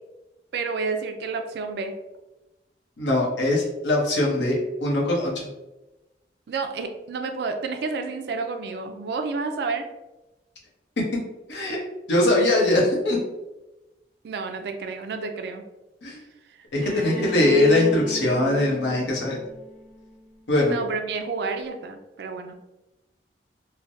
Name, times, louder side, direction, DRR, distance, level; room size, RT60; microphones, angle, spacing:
voice 1, 0.5-1.9 6.5-9.9 14.2-15.6 16.8-17.3 20.7-22.5, right 4 dB, 65° right, 6 dB, 0.3 m, -30 dB
voice 2, 3.0-5.3 11.5-11.8 12.1-13.2 16.0-16.2 16.7-19.4 20.5-20.7, left 1 dB, 90° left, -2 dB, 0.8 m, -21 dB
Bowed string instrument, 16.8-20.6, left 1 dB, 45° left, 0.7 m, -39 dB
3.2 x 2.1 x 2.6 m, 1.0 s
head